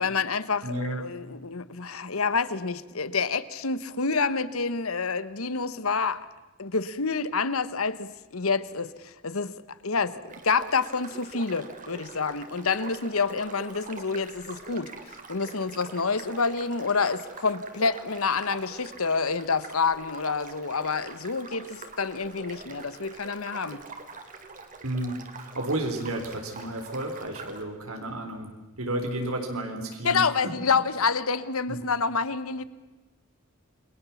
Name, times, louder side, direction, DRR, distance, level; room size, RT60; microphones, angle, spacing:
voice 1, 0.0-6.3 6.6-9.5 9.8-14.9 15.3-23.8 30.0-32.6, left 4 dB, 85° left, 15 dB, 1.2 m, -28 dB
voice 2, 0.6-1.0 24.8-28.5 28.8-30.2 31.7-31.8, right 1 dB, 85° right, 3 dB, 3.9 m, -32 dB
sound 1, 10.3-27.6, right 3 dB, 40° right, 2.9 m, -44 dB
29.0 x 23.0 x 7.2 m, 1.2 s
head